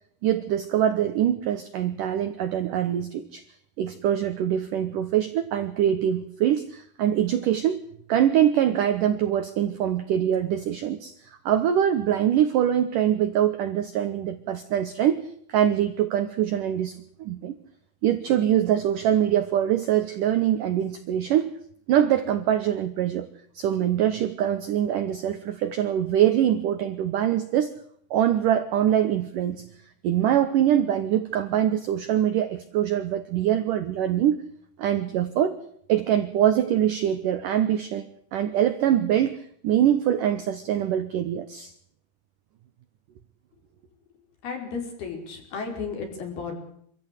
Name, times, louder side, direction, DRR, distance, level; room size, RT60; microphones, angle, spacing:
voice 1, 0.2-3.4 3.8-7.8 8.1-11.1 11.5-15.2 15.5-17.6 18.0-21.5 21.9-23.3 23.6-27.7 28.1-29.6 30.0-34.4 34.8-35.6 35.9-38.1 38.3-41.7, right 10 dB, 75° right, 10 dB, 2.0 m, -23 dB
voice 2, 44.4-46.5, left 5 dB, 60° left, 3 dB, 6.7 m, -33 dB
25.5 x 14.5 x 8.4 m, 0.66 s
omnidirectional pair, 5.1 m